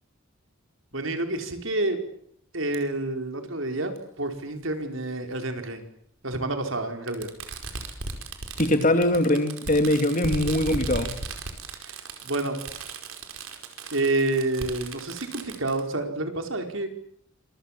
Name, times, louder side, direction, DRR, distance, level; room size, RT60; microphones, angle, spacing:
voice 1, 0.9-2.0 2.5-5.8 6.2-7.3 11.8-12.0 12.2-12.6 13.9-16.9, right 2 dB, 70° right, 4.7 m, -28 dB
Fireworks, 2.7-2.8 4.0-4.1 5.3-5.4 7.1-15.8, right 3 dB, 90° right, 4.9 m, -36 dB
voice 2, 8.6-11.2, left 1 dB, 40° left, 3.0 m, -22 dB
27.0 x 24.0 x 7.5 m
head